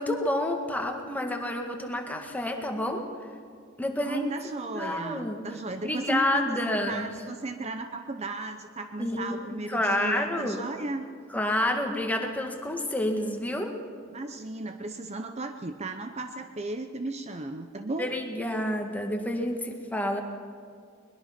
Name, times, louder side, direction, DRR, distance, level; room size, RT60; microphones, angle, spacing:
voice 1, 0.0-3.0 3.8-4.3 4.7-5.4 5.8-7.1 9.0-10.6 11.3-13.7 17.8-20.2, left 1 dB, 10° left, 3 dB, 1.8 m, -29 dB
voice 2, 4.0-11.1 14.1-18.1, right 2 dB, 30° right, 7 dB, 0.7 m, -35 dB
21.5 x 21.0 x 5.9 m, 2.2 s
head